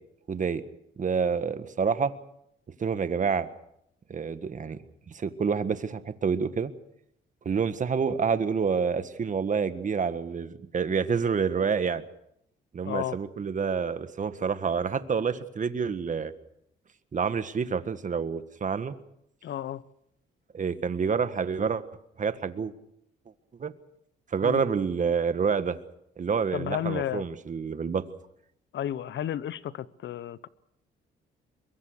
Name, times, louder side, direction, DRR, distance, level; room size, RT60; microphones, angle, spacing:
voice 1, 0.3-0.6 1.0-2.1 2.8-3.5 4.1-4.8 5.1-6.7 7.5-12.0 12.7-16.3 17.1-19.0 20.5-21.8 22.2-22.7 23.6-23.7 24.3-25.8 26.2-28.0, right 6 dB, 40° right, 11 dB, 1.6 m, -28 dB
voice 2, 12.8-13.2 19.4-19.8 24.4-24.6 26.5-27.2 28.7-30.5, left 10 dB, 65° left, 17 dB, 1.0 m, -32 dB
23.5 x 22.5 x 6.6 m, 0.76 s
cardioid pair, 90°, 20 cm